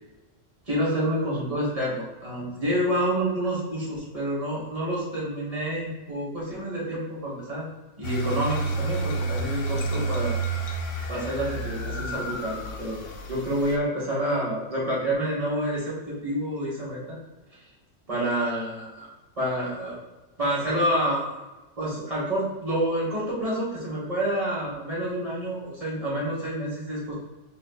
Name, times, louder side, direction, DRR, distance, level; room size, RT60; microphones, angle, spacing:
voice 1, 0.6-7.6 8.0-10.4 11.1-13.0 13.3-17.2 17.6-17.7 18.1-19.1 19.4-20.0 20.4-21.3 21.8-27.1, right 1 dB, 30° right, -6 dB, 1.3 m, -28 dB
sound 1, 8.0-13.8, right 2 dB, 75° left, 1.0 m, -30 dB
5.2 x 3.2 x 2.3 m, 1.1 s
omnidirectional pair, 1.3 m